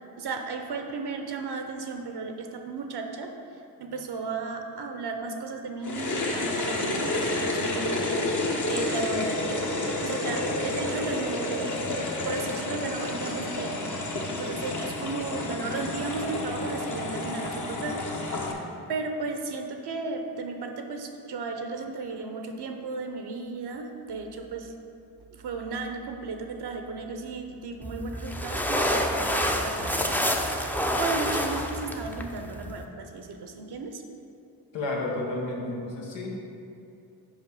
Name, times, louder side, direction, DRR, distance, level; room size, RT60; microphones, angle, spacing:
voice 1, 0.2-3.3 3.8-9.7 10.0-11.8 12.2-14.1 14.4-18.0 18.9-24.7 25.3-34.0, right 4 dB, 65° right, 5 dB, 0.7 m, -34 dB
sound 1, 5.8-18.5, left 2 dB, 45° left, 1.1 m, -30 dB
sound 2, 27.8-32.8, equal, 5° left, 0.6 m, -28 dB
voice 2, 34.7-36.4, left 2 dB, 85° left, -2 dB, 1.2 m, -31 dB
5.1 x 4.8 x 5.4 m, 2.7 s
supercardioid pair, 45°, 43 cm